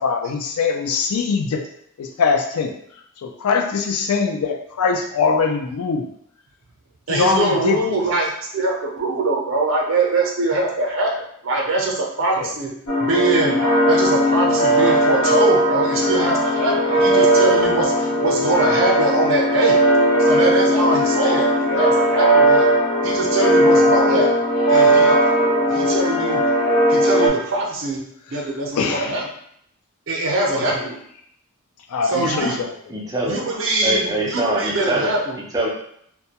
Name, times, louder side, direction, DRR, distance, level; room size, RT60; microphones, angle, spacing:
voice 1, 0.0-1.6 2.0-2.7 3.2-6.1 7.1-7.8 12.4-12.5 28.7-29.2 30.5-30.9 31.9-32.7, left 5 dB, 90° left, 4 dB, 0.4 m, -22 dB
voice 2, 7.1-11.1 11.4-12.7 13.0-13.6 13.9-19.8 20.2-22.7 23.0-24.3 24.7-25.2 25.7-26.4 26.9-28.0 28.3-29.3 30.1-31.0 32.0-32.6 33.2-35.4, right 2 dB, 60° right, -1 dB, 0.6 m, -22 dB
sound 1, 12.9-27.3, equal, 55° left, 0.7 m, -17 dB
voice 3, 32.9-33.4 33.8-35.1 35.5-35.7, right 1 dB, 15° right, -3 dB, 0.4 m, -23 dB
2.2 x 2.0 x 2.8 m, 0.68 s
head